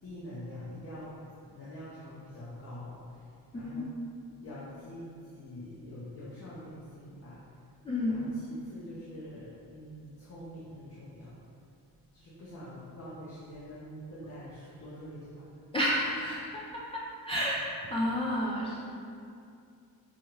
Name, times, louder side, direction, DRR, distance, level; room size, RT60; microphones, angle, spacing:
voice 1, 0.0-1.2 1.5-3.9 4.4-7.4 8.1-11.3 12.1-15.5, equal, 40° left, -10 dB, 0.8 m, -45 dB
voice 2, 3.5-3.9 7.8-8.3 15.7-18.8, equal, 15° left, -6 dB, 0.3 m, -31 dB
5.4 x 2.2 x 3.2 m, 2.4 s
cardioid pair, 120°, 36 cm